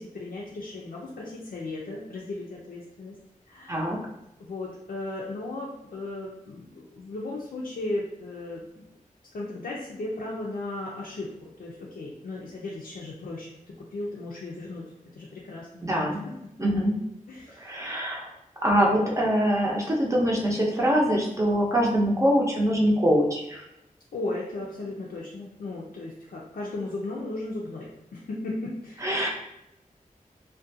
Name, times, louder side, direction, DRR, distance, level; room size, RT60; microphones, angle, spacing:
voice 1, 0.0-3.1 3.5-3.8 4.4-8.8 9.3-14.8 15.1-15.8 17.3-17.7 24.1-29.2, left 2 dB, 85° left, -4 dB, 0.4 m, -36 dB
voice 2, 15.8-16.2 16.6-16.9 17.6-18.3 18.6-23.6 29.0-29.3, equal, 20° right, -3 dB, 0.6 m, -23 dB
2.4 x 2.2 x 2.6 m, 0.85 s
wide cardioid pair, 90°, 14 cm